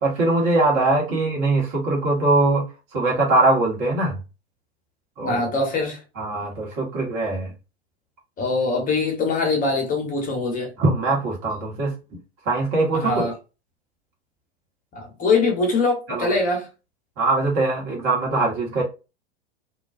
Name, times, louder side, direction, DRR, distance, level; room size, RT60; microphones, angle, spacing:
voice 1, 0.0-2.7 2.9-4.2 5.2-5.4 6.2-7.5 10.8-11.9 12.4-13.3 16.1-16.4 17.2-18.8, right 2 dB, 40° right, 1.2 m, -21 dB
voice 2, 5.2-6.0 8.4-10.7 12.9-13.3 14.9-16.7, left 3 dB, 25° left, 0.8 m, -23 dB
2.3 x 2.2 x 2.5 m
figure-of-eight pair, 90°, 33 cm